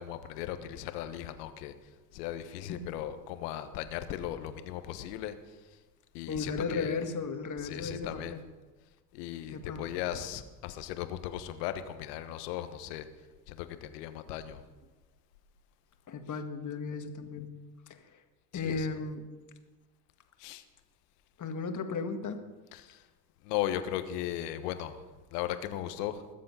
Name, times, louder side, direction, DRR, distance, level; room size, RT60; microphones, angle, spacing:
voice 1, 0.0-1.7 2.1-5.8 6.1-7.0 7.6-8.4 9.1-13.1 13.5-14.6 18.5-18.9 20.4-20.6 22.7-23.0 23.4-25.0 25.3-26.2, left 12 dB, 75° left, 10 dB, 1.3 m, -37 dB
voice 2, 6.3-8.4 9.5-9.8 16.1-17.5 17.9-18.0 18.5-19.3 21.4-22.4, left 4 dB, 40° left, 7 dB, 1.9 m, -35 dB
21.0 x 7.6 x 5.6 m, 1.3 s
hypercardioid pair, 70°, 48 cm